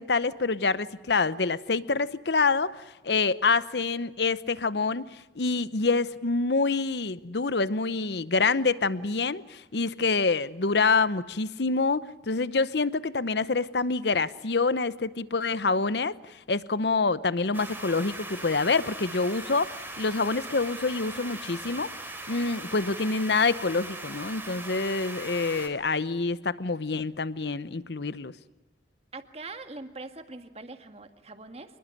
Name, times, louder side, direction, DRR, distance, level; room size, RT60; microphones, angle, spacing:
voice 1, 0.0-5.1 5.4-21.9 22.3-28.3, left 4 dB, 65° left, 16 dB, 0.9 m, -26 dB
sound 1, 17.5-25.7, right 2 dB, 10° right, 3.5 m, -40 dB
voice 2, 29.1-31.8, right 3 dB, 35° right, 7 dB, 1.9 m, -42 dB
27.0 x 21.0 x 9.9 m, 1.1 s
head